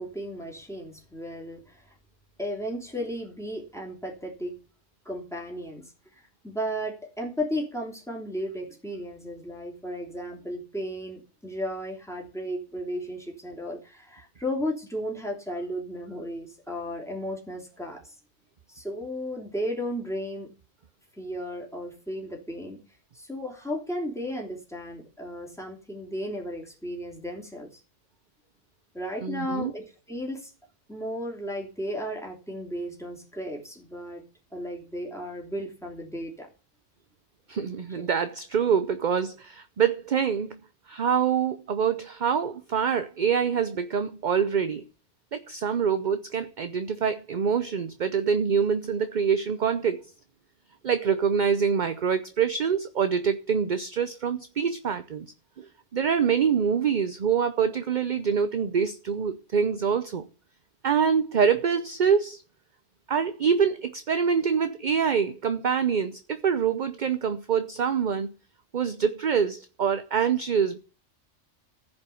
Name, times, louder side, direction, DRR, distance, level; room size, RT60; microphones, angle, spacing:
voice 1, 0.0-1.6 2.4-4.5 5.0-5.8 6.4-18.0 18.7-20.5 21.2-22.8 23.1-27.7 28.9-30.5 30.9-34.2 34.5-36.5 38.0-38.1, equal, ahead, 3.1 m, -34 dB
voice 2, 29.2-29.7 37.5-40.6 40.9-44.8 45.3-50.1 50.8-55.3 55.6-60.3 60.8-62.4 63.1-68.3 68.7-70.8, right 7 dB, 45° right, 0.7 m, -25 dB
14.5 x 5.4 x 7.0 m
omnidirectional pair, 1.3 m